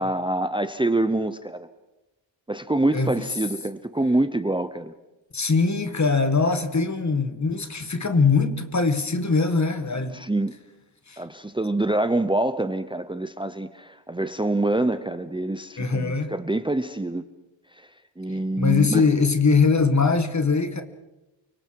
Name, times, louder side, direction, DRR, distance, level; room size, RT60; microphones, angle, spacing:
voice 1, 0.0-1.7 2.5-4.9 10.1-10.5 11.2-17.2 17.8-17.9 18.2-19.1, right 2 dB, 10° right, 0.7 m, -25 dB
voice 2, 5.3-10.1 11.1-11.2 15.8-16.3 18.6-20.8, left 4 dB, 40° left, 1.7 m, -21 dB
29.0 x 24.5 x 4.7 m
wide cardioid pair, 115°, 45 cm